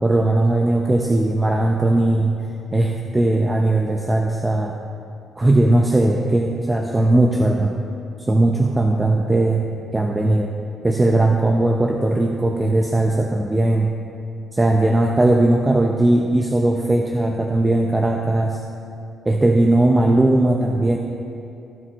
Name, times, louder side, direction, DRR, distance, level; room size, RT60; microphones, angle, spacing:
voice 1, 0.0-2.4 2.7-4.7 5.4-7.7 8.3-9.7 9.9-10.5 10.8-13.9 14.5-18.6 19.3-21.0, right 2 dB, 20° right, 2 dB, 0.7 m, -18 dB
15.5 x 6.5 x 4.1 m, 2.6 s
cardioid pair, 90°, 0 cm